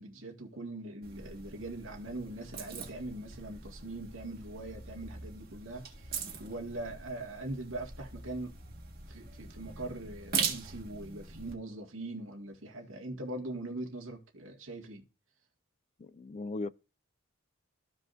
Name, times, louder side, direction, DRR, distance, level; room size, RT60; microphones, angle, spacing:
voice 1, 0.0-8.5 9.1-15.0, right 2 dB, 80° right, 1.9 m, -42 dB
sound 1, 1.0-11.5, right 6 dB, 50° right, 1.8 m, -41 dB
voice 2, 16.0-16.7, left 3 dB, 35° left, 0.3 m, -38 dB
14.5 x 4.9 x 2.6 m
head